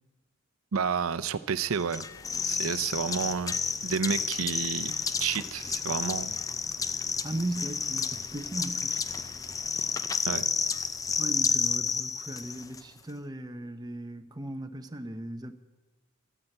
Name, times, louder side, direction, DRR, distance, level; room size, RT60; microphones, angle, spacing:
voice 1, 0.7-2.0 2.4-3.6 3.8-6.4 10.3-10.5, right 6 dB, 90° right, 0.6 m, -30 dB
sound 1, 1.9-12.8, left 6 dB, 15° left, 0.4 m, -31 dB
voice 2, 7.2-9.1 11.2-15.5, right 1 dB, 20° right, 0.7 m, -37 dB
14.0 x 10.0 x 7.9 m
head